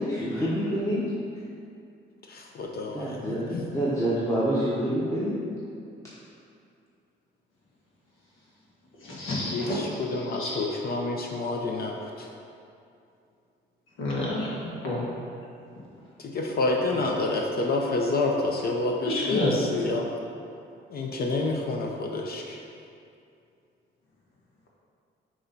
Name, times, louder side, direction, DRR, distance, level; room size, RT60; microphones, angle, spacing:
voice 1, 0.1-1.0 2.9-5.3, right 1 dB, 15° left, -9 dB, 1.0 m, -27 dB
voice 2, 2.3-3.4 9.5-12.3 16.2-20.1 20.9-22.6, left 2 dB, 50° left, 1 dB, 0.6 m, -28 dB
voice 3, 9.0-9.8 10.3-10.6 14.0-15.1 19.0-19.5, left 1 dB, 85° left, -5 dB, 1.5 m, -30 dB
6.3 x 3.0 x 5.3 m, 2.5 s
cardioid pair, 90°, 20 cm